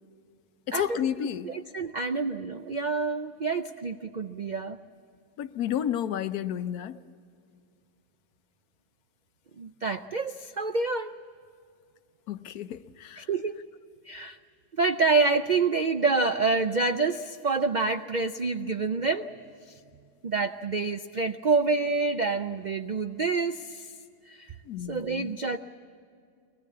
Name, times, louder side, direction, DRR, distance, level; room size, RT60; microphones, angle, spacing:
voice 1, 0.7-1.5 5.4-7.0 12.3-13.3 24.6-25.3, left 10 dB, 75° left, 1.3 m, -31 dB
voice 2, 1.4-4.8 9.6-11.1 13.2-13.6 14.1-14.4 14.8-19.3 20.2-23.9 24.3-24.5 24.9-25.6, right 4 dB, 85° right, 0.4 m, -27 dB
23.0 x 19.5 x 8.5 m
omnidirectional pair, 1.6 m